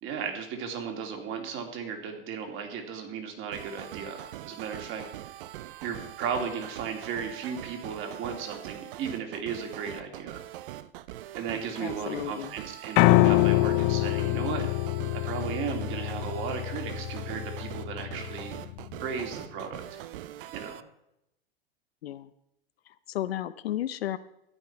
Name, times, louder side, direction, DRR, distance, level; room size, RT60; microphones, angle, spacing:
voice 1, 0.0-5.1 5.8-10.4 11.3-14.7 15.1-18.5 19.0-19.8 20.5-20.8, right 6 dB, 40° right, 4 dB, 2.8 m, -35 dB
sound 1, 3.5-20.8, right 13 dB, 60° right, 0.7 m, -42 dB
voice 2, 11.8-12.5 22.0-22.3 23.1-24.2, left 12 dB, 75° left, 12 dB, 0.8 m, -33 dB
Piano, 13.0-19.1, left 18 dB, 40° left, 0.5 m, -25 dB
13.5 x 9.2 x 4.7 m, 0.81 s
hypercardioid pair, 110°, 31 cm